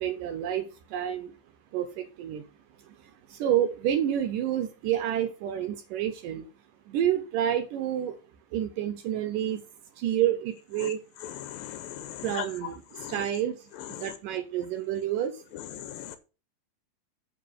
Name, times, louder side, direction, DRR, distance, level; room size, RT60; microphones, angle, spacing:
voice 1, 0.0-1.3 1.7-2.4 3.4-6.4 6.9-8.2 8.5-9.6 10.0-11.0 12.2-12.7 13.1-13.6 14.0-15.3, right 10 dB, 75° right, 2.2 m, -28 dB
voice 2, 11.2-12.5 12.9-13.2 13.9-14.1 15.8-16.2, left 11 dB, 85° left, 2.5 m, -38 dB
8.9 x 5.5 x 5.9 m
omnidirectional pair, 4.2 m